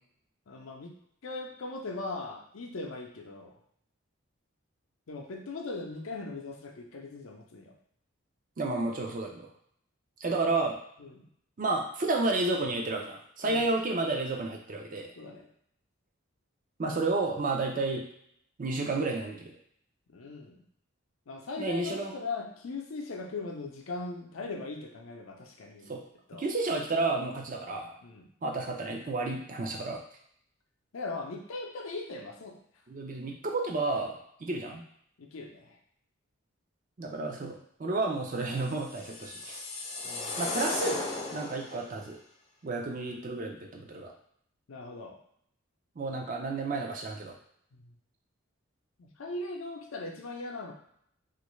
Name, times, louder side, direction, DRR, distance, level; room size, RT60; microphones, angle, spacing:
voice 1, 0.5-1.0 1.2-3.6 5.1-7.7 11.0-11.3 13.4-13.7 15.2-15.5 20.1-20.6 21.3-25.9 26.3-26.5 28.0-28.3 30.9-32.6 35.2-35.8 40.0-40.5 44.7-45.2 47.7-47.9 49.0-50.7, left 3 dB, 80° left, 2 dB, 0.5 m, -39 dB
voice 2, 8.6-9.5 10.2-10.8 11.6-15.1 16.8-18.0 18.6-19.5 21.6-22.1 25.9-26.0 26.3-27.9 28.4-30.0 32.9-34.8 37.0-39.6 40.4-41.0 41.3-42.2 42.6-44.1 46.0-47.3, right 3 dB, 40° right, 1 dB, 0.5 m, -31 dB
sound 1, 38.7-41.9, left 3 dB, 30° left, 0.4 m, -35 dB
3.0 x 2.5 x 3.1 m, 0.68 s
head